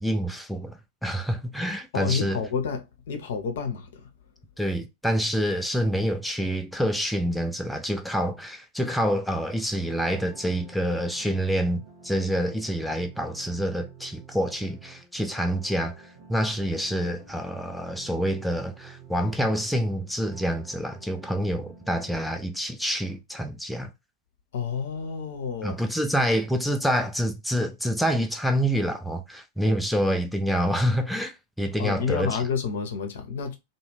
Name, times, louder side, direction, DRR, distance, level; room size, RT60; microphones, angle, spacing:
voice 1, 0.0-2.4 4.6-15.9 16.3-23.9 25.6-32.4, equal, ahead, 0.3 m, -27 dB
voice 2, 1.9-4.1 24.5-25.8 31.8-33.6, left 6 dB, 60° left, 0.6 m, -29 dB
sound 1, 10.1-22.1, right 4 dB, 55° right, 1.1 m, -50 dB
2.4 x 2.1 x 3.2 m
figure-of-eight pair, 90°, 0 cm